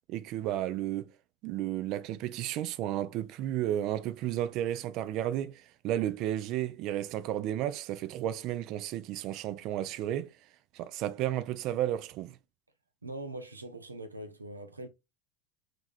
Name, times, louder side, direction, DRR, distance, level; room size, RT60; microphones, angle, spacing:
voice 1, 0.1-1.1 1.4-10.3 10.7-12.4, right 12 dB, 50° right, 0.5 m, -33 dB
voice 2, 13.0-14.9, right 1 dB, 85° right, 0.7 m, -42 dB
6.0 x 3.5 x 2.4 m
figure-of-eight pair, 75°, 0 cm